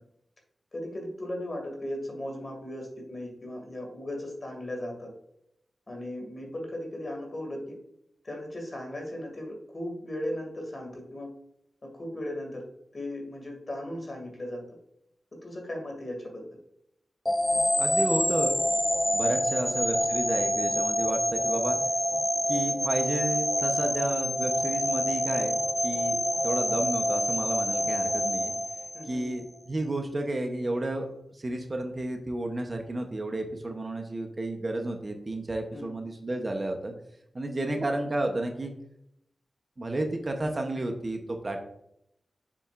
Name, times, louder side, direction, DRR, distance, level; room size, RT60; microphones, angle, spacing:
voice 1, 0.7-5.1 5.9-7.8 8.2-11.3 11.8-12.6 12.9-14.6 15.4-16.4 28.9-29.2 35.7-35.9 37.6-37.7, left 1 dB, 40° left, 1 dB, 2.3 m, -37 dB
sound 1, 17.2-29.4, left 1 dB, 10° left, 0.5 m, -27 dB
voice 2, 17.8-18.6 19.1-21.8 22.5-28.5 29.1-31.1 31.3-36.9 37.3-38.7 39.8-41.6, right 2 dB, 35° right, 4 dB, 0.8 m, -32 dB
7.1 x 6.9 x 2.5 m, 0.75 s
wide cardioid pair, 125°, 0 cm